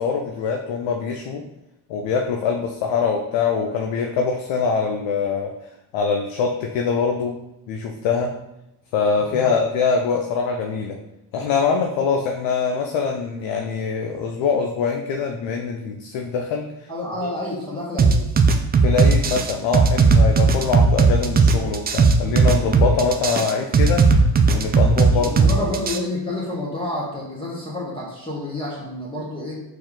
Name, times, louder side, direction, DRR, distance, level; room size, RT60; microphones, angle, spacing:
voice 1, 0.0-1.4 1.9-5.5 5.9-7.3 7.7-8.3 8.9-11.0 11.3-16.7 18.8-24.1 24.5-25.8, left 5 dB, 75° left, 3 dB, 0.6 m, -23 dB
voice 2, 16.9-18.2 25.0-29.6, left 1 dB, 10° left, -6 dB, 1.2 m, -29 dB
sound 1, 18.0-26.0, right 4 dB, 25° right, 0.3 m, -16 dB
4.3 x 2.6 x 3.7 m, 0.88 s
supercardioid pair, 60°, 47 cm